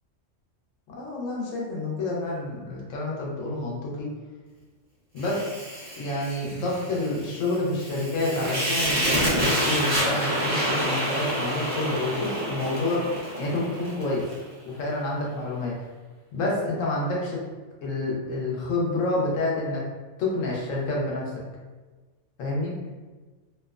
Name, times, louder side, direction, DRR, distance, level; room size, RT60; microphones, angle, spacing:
voice 1, 0.9-4.1 5.1-5.5 6.0-14.2 14.6-15.7 16.3-17.4 17.8-19.8 20.2-21.2 22.4-22.7, left 2 dB, 90° left, -3 dB, 1.0 m, -28 dB
Fire, 5.2-14.4, right 1 dB, 35° right, 0.7 m, -28 dB
2.9 x 2.0 x 2.3 m, 1.3 s
omnidirectional pair, 1.3 m